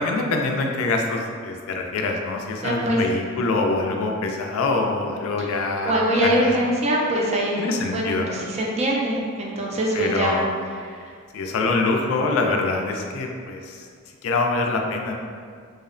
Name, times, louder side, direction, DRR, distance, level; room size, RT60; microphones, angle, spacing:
voice 1, 0.0-6.5 7.6-8.3 9.9-10.6 11.3-13.9 14.2-15.1, left 3 dB, 70° left, 3 dB, 0.3 m, -24 dB
voice 2, 2.6-3.0 5.4-5.5 5.8-10.4, right 1 dB, 30° right, -2 dB, 0.3 m, -23 dB
2.7 x 2.0 x 2.4 m, 2.1 s
head